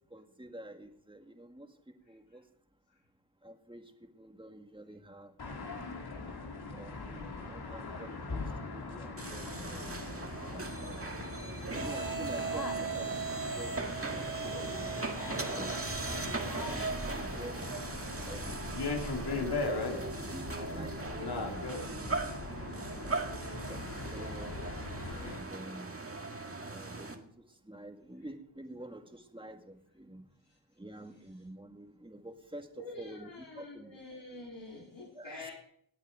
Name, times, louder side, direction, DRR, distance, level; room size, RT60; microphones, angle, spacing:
voice 1, 0.1-2.4 3.4-5.4 6.7-11.4 11.7-13.7 14.1-15.8 16.2-17.6 18.2-18.9 19.7-20.9 21.3-22.3 23.0-23.3 23.7-23.8 24.1-24.6 25.1-26.0 26.7-30.2 30.8-34.0 35.1-35.5, right 1 dB, 10° right, 5 dB, 2.0 m, -48 dB
sound 1, 5.4-25.4, left 3 dB, 60° left, 2.2 m, -40 dB
sound 2, 9.2-27.2, right 3 dB, 30° right, 1.8 m, -38 dB
voice 2, 32.8-35.5, left 3 dB, 85° left, -3 dB, 3.5 m, -49 dB
18.5 x 8.4 x 5.0 m, 0.67 s
cardioid pair, 55°, 43 cm